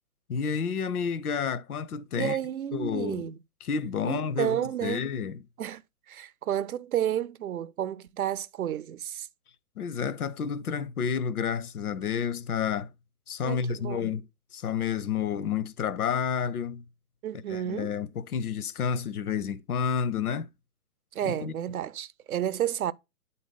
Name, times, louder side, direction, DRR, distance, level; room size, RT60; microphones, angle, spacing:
voice 1, 0.3-2.4 2.7-3.3 3.6-4.6 4.8-5.4 9.8-12.9 13.3-14.2 14.5-16.8 17.5-20.5 21.4-21.6, left 7 dB, 90° left, 0.7 m, -30 dB
voice 2, 2.1-3.4 4.0-5.0 5.6-5.8 6.1-9.3 13.4-14.1 17.2-18.0 21.1-22.9, right 11 dB, 75° right, 0.6 m, -31 dB
8.6 x 4.0 x 3.8 m
hypercardioid pair, 150°, 43 cm